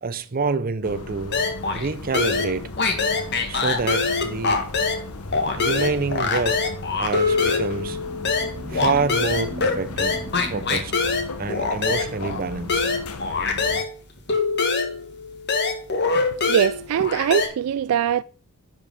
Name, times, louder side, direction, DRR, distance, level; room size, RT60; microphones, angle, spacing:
voice 1, 0.0-1.4 1.7-2.7 3.5-4.7 5.5-6.7 7.0-8.2 8.7-10.2 10.5-11.0 11.4-12.9, right 4 dB, 40° right, 0.7 m, -27 dB
sound 1, 0.8-13.8, left 2 dB, 80° left, 1.0 m, -37 dB
sound 2, 1.3-1.9 2.1-5.1 5.3-13.9 14.3-17.5, left 4 dB, 50° left, 1.8 m, -24 dB
sound 3, 3.1-10.5, equal, 5° right, 2.1 m, -42 dB
voice 2, 16.5-18.2, right 9 dB, 75° right, 0.3 m, -21 dB
10.5 x 5.0 x 5.3 m
head